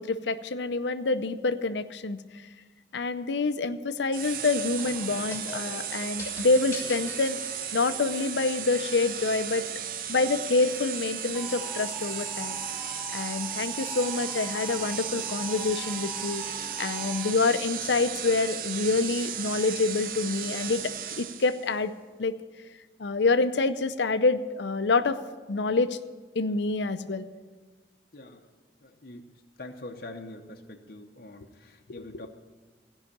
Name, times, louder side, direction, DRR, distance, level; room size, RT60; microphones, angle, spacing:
voice 1, 0.0-2.2 2.9-7.4 7.7-9.6 10.1-12.6 13.1-16.4 16.8-20.8 21.2-21.9 22.2-22.3 23.0-25.2 25.5-26.0 26.3-27.3, left 3 dB, 75° left, 11 dB, 0.6 m, -27 dB
sound 1, 4.1-21.7, right 9 dB, 50° right, 0.5 m, -35 dB
sound 2, 4.8-8.2, left 3 dB, 15° left, 2.5 m, -43 dB
sound 3, 11.3-17.6, left 1 dB, ahead, 0.6 m, -43 dB
voice 2, 28.1-28.5 28.8-29.3 29.6-32.3, left 2 dB, 55° left, 2 dB, 0.9 m, -44 dB
16.0 x 5.7 x 8.6 m, 1.3 s
head